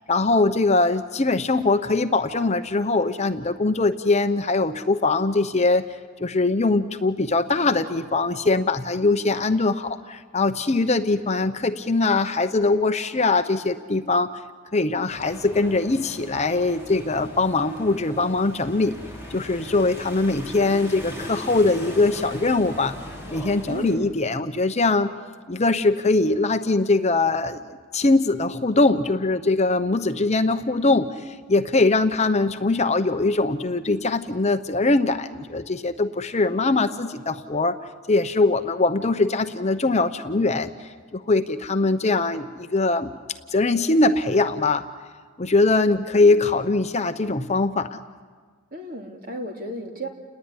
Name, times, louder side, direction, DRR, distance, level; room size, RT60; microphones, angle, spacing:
voice 1, 0.0-5.9 6.2-14.3 14.7-19.0 19.3-22.9 23.3-25.1 25.5-37.8 38.1-43.1 43.5-44.8 45.4-48.0, left 3 dB, 30° left, 9 dB, 0.8 m, -22 dB
sound 1, 15.1-24.0, equal, 10° right, 4.5 m, -39 dB
voice 2, 23.7-24.1 48.7-50.1, right 1 dB, 40° right, 2 dB, 3.2 m, -34 dB
30.0 x 19.0 x 9.9 m, 1.5 s
head